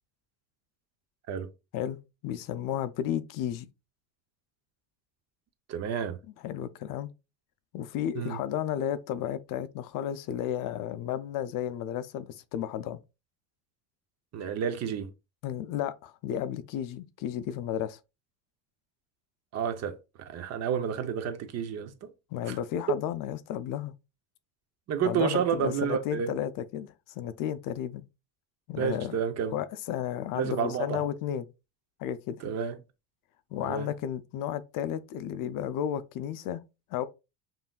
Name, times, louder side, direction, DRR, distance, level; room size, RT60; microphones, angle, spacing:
voice 1, 2.2-3.7 6.4-7.1 7.7-13.0 15.4-18.0 22.3-23.9 25.0-28.0 28.7-29.2 29.5-31.5 32.0-32.5 33.5-36.6 36.9-37.0, left 10 dB, 55° left, 0.5 m, -33 dB
voice 2, 5.7-6.2 8.1-8.4 14.3-15.1 19.5-22.1 22.4-22.6 22.9-23.0 24.9-26.3 28.8-29.5 30.3-31.0 32.4-32.8 33.6-33.9, right 7 dB, 40° right, 0.6 m, -30 dB
5.5 x 2.6 x 2.2 m
cardioid pair, 135°, 39 cm